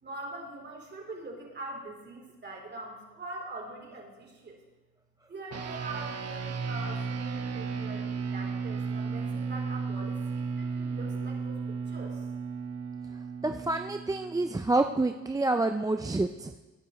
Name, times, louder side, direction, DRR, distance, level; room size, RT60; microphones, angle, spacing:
voice 1, 0.0-4.6 5.3-11.6 11.9-12.3, right 2 dB, 35° right, 0 dB, 3.5 m, -43 dB
sound 1, 5.5-15.1, right 5 dB, 55° right, 1.3 m, -34 dB
voice 2, 13.4-16.5, right 2 dB, 10° right, 6 dB, 0.5 m, -28 dB
19.0 x 9.9 x 3.1 m, 1.2 s
cardioid pair, 90°, 30 cm